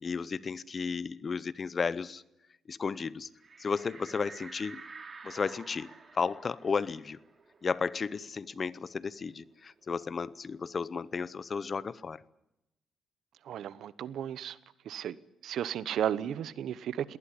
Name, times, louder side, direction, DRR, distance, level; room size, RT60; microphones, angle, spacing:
voice 1, 0.0-2.2 2.7-3.3 3.6-4.8 5.2-5.9 6.1-7.2 7.6-12.2, left 5 dB, 40° left, 0.8 m, -33 dB
sound 1, 3.4-8.6 9.0-9.1 9.4-11.0, right 4 dB, 35° right, 3.2 m, -51 dB
voice 2, 13.4-14.6 14.8-15.2 15.4-17.2, right 10 dB, 70° right, 1.0 m, -34 dB
20.5 x 18.5 x 9.9 m
cardioid pair, 90°, 0 cm